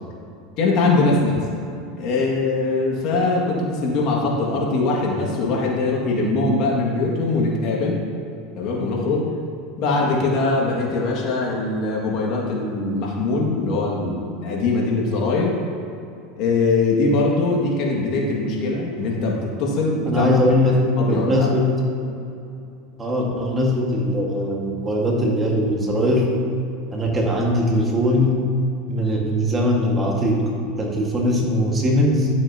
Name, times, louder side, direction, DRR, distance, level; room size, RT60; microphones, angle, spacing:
voice 1, 0.6-1.4 2.0-8.0 8.5-9.3 9.8-15.6 16.4-20.6 21.0-21.5 22.0-22.1, left 3 dB, 55° left, -2 dB, 1.9 m, -22 dB
voice 2, 20.0-21.7 23.0-26.4 26.9-28.4 28.9-30.5 30.8-32.3, left 1 dB, 20° right, -1 dB, 1.6 m, -20 dB
12.0 x 7.1 x 2.8 m, 2.7 s
supercardioid pair, 115°, 0 cm